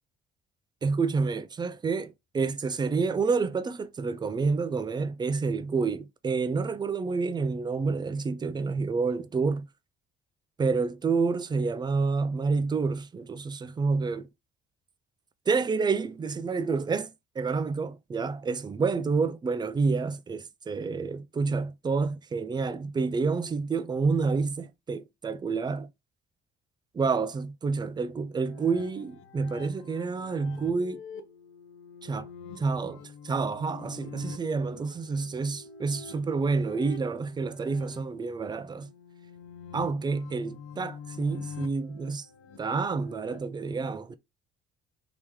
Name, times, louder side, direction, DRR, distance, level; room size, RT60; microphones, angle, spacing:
voice 1, 0.8-9.7 10.6-14.3 15.5-17.1 17.4-25.9 26.9-31.0 32.0-32.3 32.6-33.0 33.2-38.9 39.7-42.3 42.6-44.1, right 4 dB, 20° right, 0.4 m, -28 dB
sound 1, 28.4-43.4, left 5 dB, 70° left, 0.7 m, -46 dB
3.0 x 3.0 x 3.5 m
cardioid pair, 105°, 21 cm